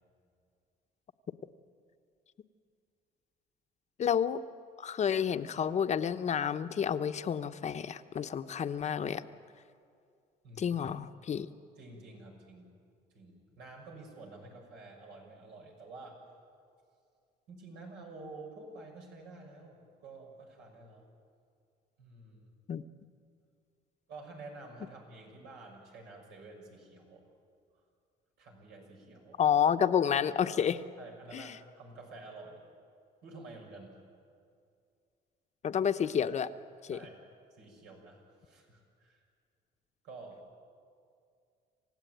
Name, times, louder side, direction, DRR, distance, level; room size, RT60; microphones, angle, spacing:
voice 1, 4.0-4.4 4.8-9.2 10.6-11.5 22.7-22.8 29.4-30.8 31.3-31.4 35.6-36.5 36.9-37.0, left 8 dB, 40° left, 10 dB, 0.9 m, -29 dB
voice 2, 10.4-10.8 11.8-12.8 13.1-16.2 17.5-21.1 22.0-22.5 24.1-27.3 28.4-29.4 31.0-32.6 33.2-34.1 36.9-37.2 37.5-39.2 40.0-40.5, right 3 dB, 85° right, 0 dB, 6.4 m, -50 dB
27.5 x 16.0 x 9.2 m, 2.4 s
cardioid pair, 110°, 17 cm